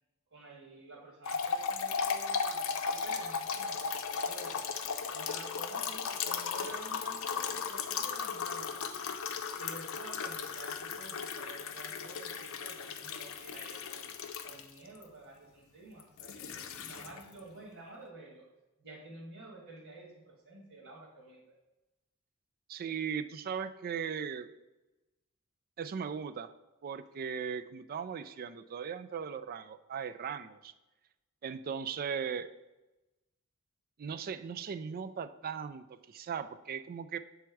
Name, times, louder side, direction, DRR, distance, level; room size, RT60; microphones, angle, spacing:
voice 1, 0.3-4.7 5.1-9.0 9.5-14.0 14.4-18.4 18.8-21.4, right 2 dB, 65° right, -4 dB, 1.6 m, -50 dB
sound 1, 1.2-15.0 16.0-17.4, left 6 dB, 65° left, 0.5 m, -36 dB
voice 2, 22.7-24.5 25.8-26.5 26.8-30.7 31.4-32.5 34.0-37.2, right 7 dB, 40° right, 12 dB, 0.3 m, -38 dB
7.3 x 3.4 x 4.6 m, 1.0 s
head